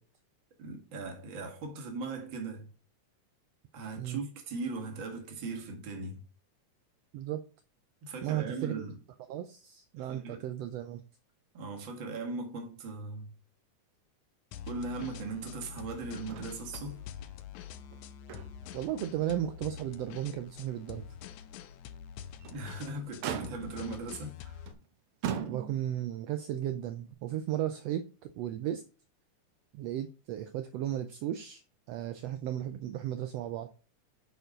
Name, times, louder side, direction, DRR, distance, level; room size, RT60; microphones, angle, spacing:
voice 1, 0.6-2.7 3.7-6.2 8.0-9.0 10.0-10.5 11.5-13.3 14.7-17.0 22.5-24.7, right 3 dB, 45° right, 2.1 m, -39 dB
voice 2, 8.2-8.9 9.3-11.0 18.7-21.0 25.5-28.8 29.7-31.6 31.9-33.7, right 11 dB, 85° right, 1.4 m, -35 dB
sound 1, 14.5-24.7, left 9 dB, 80° left, 2.1 m, -46 dB
Motor vehicle (road), 16.3-16.9 17.2-17.3 17.8-18.8 19.2-19.3 19.9-20.0 22.2-22.7 23.2-23.9 24.7-24.8 25.2-26.0 27.1-27.2, right 8 dB, 65° right, 1.5 m, -39 dB
9.2 x 4.5 x 5.0 m
omnidirectional pair, 3.5 m